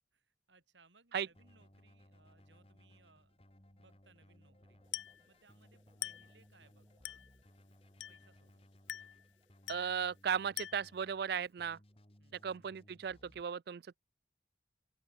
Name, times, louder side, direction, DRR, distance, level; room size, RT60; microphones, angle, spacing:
voice 1, 0.1-3.3 3.7-4.8 5.3-7.2 8.1-8.7 12.2-12.5, right 3 dB, 80° right, 4.1 m, -68 dB
sound 1, 1.1-13.2, equal, 15° right, 3.9 m, -76 dB
Keyboard (musical), 1.3-13.4, left 1 dB, 30° left, 2.7 m, -63 dB
Glass, 4.9-5.3 6.0-6.4 7.0-7.4 8.0-8.3 8.9-9.2 9.7-10.0 10.6-11.0, left 14 dB, 90° left, 0.6 m, -44 dB
voice 2, 9.7-11.8 12.4-14.0, right 7 dB, 55° right, 0.3 m, -36 dB
open air
head